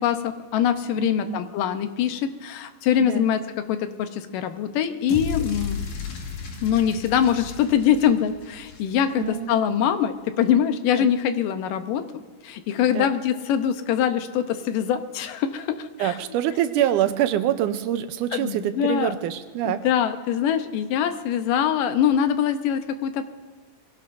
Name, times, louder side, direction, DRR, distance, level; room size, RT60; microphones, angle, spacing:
voice 1, 0.0-5.8 6.6-16.2 18.3-19.1 19.7-23.2, left 9 dB, 85° left, 9 dB, 2.5 m, -23 dB
voice 2, 1.0-1.5 3.0-3.3 9.2-9.7 11.0-11.1 12.9-13.1 16.0-19.9, right 11 dB, 80° right, 9 dB, 2.1 m, -25 dB
sound 1, 5.1-9.3, left 5 dB, 65° left, 3.1 m, -34 dB
22.5 x 16.5 x 2.6 m, 1.5 s
omnidirectional pair, 3.8 m